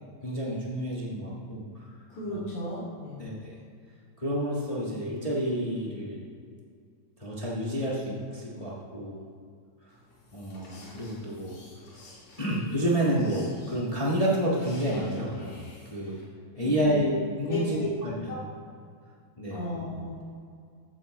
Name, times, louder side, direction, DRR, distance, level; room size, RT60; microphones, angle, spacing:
voice 1, 0.2-1.6 2.3-2.4 3.2-3.5 4.2-6.2 7.2-9.2 10.3-11.6 12.4-15.5 15.9-16.3 16.6-18.1 19.4-19.6, equal, 20° left, -5 dB, 1.2 m, -29 dB
voice 2, 2.1-3.2 16.5-17.0 17.5-17.9 18.3-18.4 19.5-20.2, left 2 dB, 85° left, -9 dB, 3.9 m, -34 dB
sound 1, 9.9-16.2, left 1 dB, 55° left, 3.6 m, -52 dB
14.5 x 9.8 x 3.2 m, 2.2 s
omnidirectional pair, 3.4 m